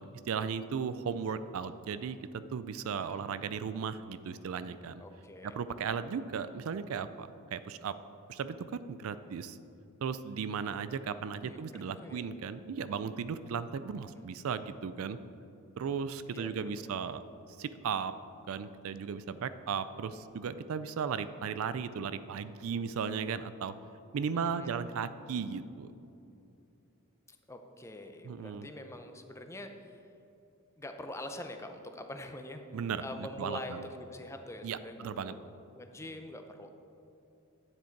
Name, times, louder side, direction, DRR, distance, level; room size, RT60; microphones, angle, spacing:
voice 1, 0.0-5.0 5.4-8.0 8.3-9.6 10.0-15.2 15.8-17.2 17.6-18.1 18.5-23.7 24.1-25.9 28.2-28.7 32.7-33.8 34.6-35.3, right 6 dB, 70° right, 13 dB, 0.4 m, -36 dB
voice 2, 3.0-3.7 5.0-5.6 11.4-12.3 16.3-16.8 24.4-24.8 27.3-30.0 30.8-32.6 33.0-36.7, left 1 dB, 15° left, 6 dB, 0.6 m, -45 dB
9.7 x 7.4 x 4.5 m, 2.8 s
head